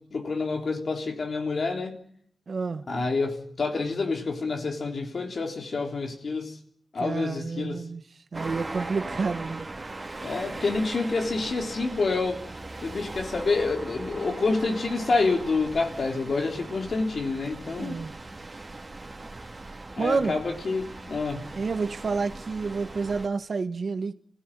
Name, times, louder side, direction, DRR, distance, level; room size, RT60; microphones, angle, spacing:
voice 1, 0.1-2.0 2.9-6.5 6.9-7.8 10.2-12.4 12.8-18.0 20.0-21.4, left 3 dB, 70° left, 3.6 m, -28 dB
voice 2, 2.5-2.8 7.0-8.0 8.3-9.7 17.8-18.2 20.0-20.4 21.5-24.1, right 4 dB, 70° right, 1.4 m, -29 dB
sound 1, 8.3-23.3, right 2 dB, 35° right, 2.9 m, -39 dB
26.0 x 16.0 x 9.2 m
wide cardioid pair, 70°, 0 cm